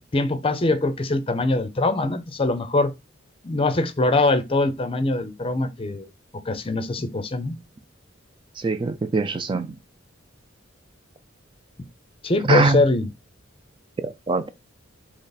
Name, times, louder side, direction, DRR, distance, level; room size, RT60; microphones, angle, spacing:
voice 1, 0.1-2.9 3.4-6.1 6.5-7.5 12.2-13.0, left 2 dB, 30° left, 0.6 m, -22 dB
voice 2, 8.6-9.8 12.4-12.8 14.0-14.5, right 3 dB, 25° right, 0.3 m, -22 dB
3.9 x 3.0 x 4.0 m
head